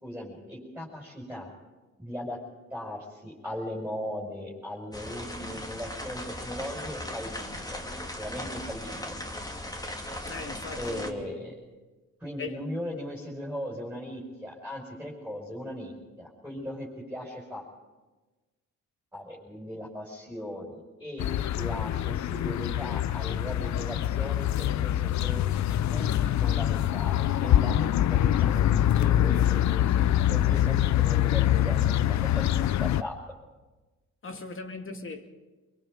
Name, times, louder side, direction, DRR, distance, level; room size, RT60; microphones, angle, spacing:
voice 1, 0.0-1.5 2.0-2.4 2.7-7.8 8.2-9.1 10.8-11.6 12.2-17.6 19.1-21.3 21.5-25.4 25.9-33.1, equal, 5° right, 5.8 m, -38 dB
sound 1, 4.9-11.1, left 1 dB, 10° left, 2.5 m, -38 dB
voice 2, 10.3-11.5 12.4-12.5 34.2-35.3, left 3 dB, 45° left, 2.5 m, -39 dB
sound 2, 21.2-33.0, left 12 dB, 65° left, 0.7 m, -25 dB
24.0 x 23.0 x 5.1 m
cardioid pair, 90°, 30 cm